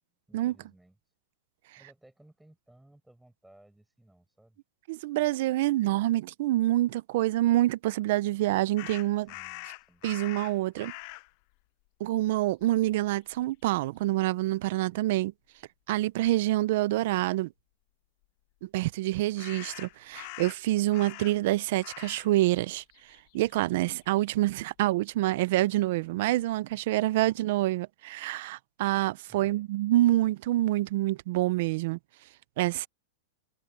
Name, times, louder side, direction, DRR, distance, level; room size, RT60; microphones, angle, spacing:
voice 1, 0.3-1.0 1.8-4.6 9.2-10.1 29.3-29.6, right 1 dB, ahead, 4.9 m, -59 dB
voice 2, 4.9-9.3 10.0-10.9 12.0-15.3 15.9-17.5 18.6-22.8 23.3-32.0 32.6-32.9, right 16 dB, 40° right, 0.5 m, -27 dB
sound 1, 8.8-11.3 12.1-12.3 12.6-13.5 19.4-21.5 21.8-22.3 22.6-24.2, left 23 dB, 30° left, 0.5 m, -44 dB
supercardioid pair, 180°, 0 cm